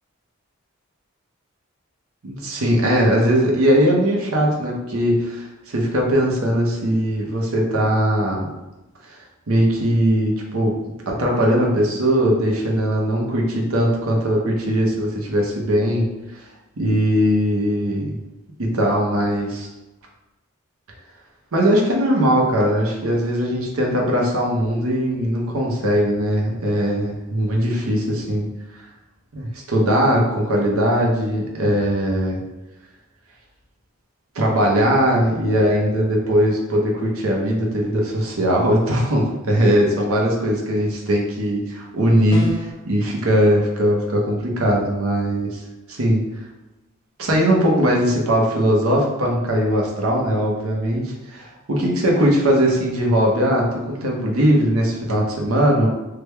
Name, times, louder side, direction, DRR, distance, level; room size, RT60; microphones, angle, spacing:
voice 1, 2.2-8.5 9.1-9.2 9.5-10.8 11.1-16.1 16.8-18.2 18.6-19.7 21.5-28.5 28.7-28.9 29.3-32.4 34.3-45.6 45.9-46.2 47.2-51.4 51.7-55.9, equal, 85° right, -1 dB, 0.7 m, -20 dB
sound 1, 42.3-42.9, equal, 20° left, 0.5 m, -29 dB
3.3 x 2.2 x 3.2 m, 1.0 s
head